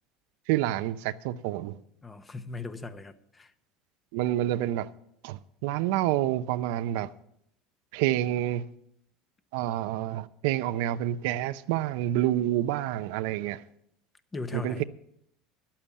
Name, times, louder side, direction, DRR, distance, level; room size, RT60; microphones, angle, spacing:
voice 1, 0.5-1.8 4.1-4.9 5.2-7.1 7.9-8.6 9.5-13.6 14.5-14.8, right 13 dB, 75° right, 0.6 m, -28 dB
voice 2, 2.0-3.5 14.3-14.8, left 2 dB, 20° left, 1.0 m, -38 dB
11.5 x 8.7 x 7.2 m
supercardioid pair, 105°, 0 cm